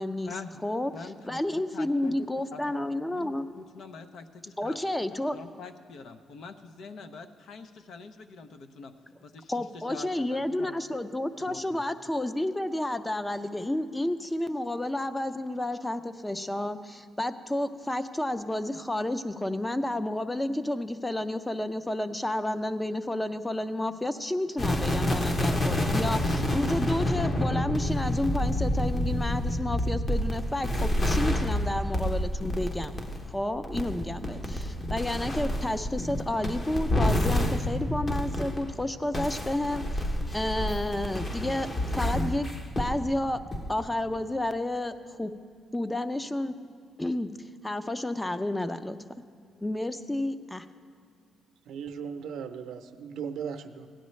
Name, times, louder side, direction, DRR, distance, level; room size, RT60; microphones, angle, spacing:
voice 1, 0.0-0.3 0.6-0.9 1.2-3.5 4.6-5.4 9.5-32.9 33.3-40.0 40.3-41.7 41.9-42.5 42.8-43.4 43.7-45.3 45.7-46.6 47.0-47.3 47.6-49.0 49.6-50.6, left 1 dB, 10° left, 11 dB, 0.5 m, -31 dB
voice 2, 0.9-4.8 5.3-8.9 9.2-9.5 9.9-11.0 11.5-11.8, left 4 dB, 70° left, 8 dB, 0.7 m, -44 dB
sound 1, 24.6-38.7 39.1-43.0 43.5-43.7, left 1 dB, 30° left, 1.0 m, -28 dB
voice 3, 51.7-53.9, right 7 dB, 80° right, 7 dB, 0.7 m, -37 dB
16.5 x 10.0 x 3.2 m, 2.3 s
cardioid pair, 90°, 0 cm